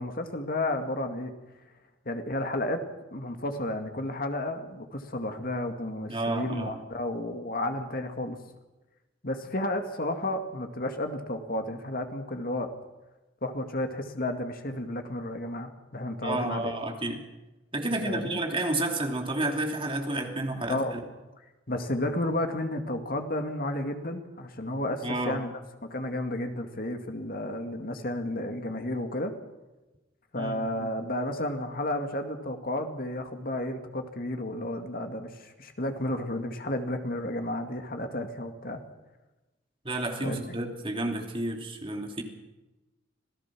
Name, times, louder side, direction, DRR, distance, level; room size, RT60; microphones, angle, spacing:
voice 1, 0.0-1.3 2.1-8.4 9.2-12.7 13.4-16.7 17.9-18.4 20.6-20.9 21.7-25.5 25.8-29.3 30.3-38.8 40.2-40.4, left 1 dB, 50° left, 5 dB, 2.2 m, -32 dB
voice 2, 6.1-6.8 16.2-17.2 17.7-21.0 25.0-25.4 30.4-30.9 39.8-42.2, right 1 dB, 30° right, 2 dB, 2.9 m, -31 dB
26.5 x 16.5 x 6.2 m, 1.1 s
head